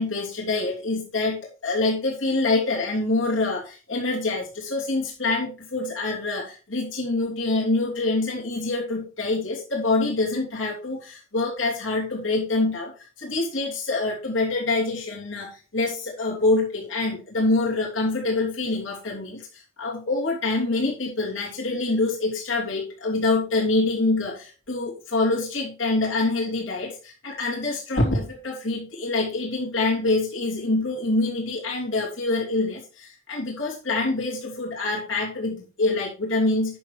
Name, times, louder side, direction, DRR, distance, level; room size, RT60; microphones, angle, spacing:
voice 1, 0.0-12.9 13.2-36.8, left 2 dB, 70° left, -4 dB, 3.3 m, -25 dB
9.7 x 6.7 x 4.7 m, 0.34 s
head